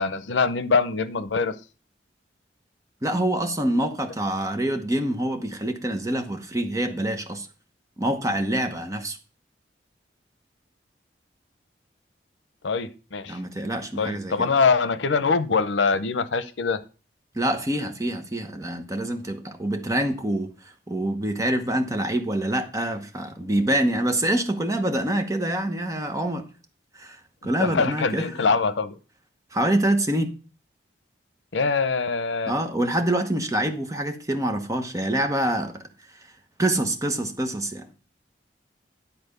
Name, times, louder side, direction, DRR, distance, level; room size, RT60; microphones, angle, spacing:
voice 1, 0.0-1.5 12.6-13.4 14.0-16.8 27.6-29.0 31.5-32.5, left 4 dB, 90° left, 0.7 m, -23 dB
voice 2, 3.0-7.5 8.0-9.2 13.3-14.5 17.3-26.5 26.9-28.3 29.5-30.3 32.5-35.9 36.6-37.9, right 1 dB, 20° right, 1.0 m, -26 dB
10.5 x 4.2 x 6.7 m
head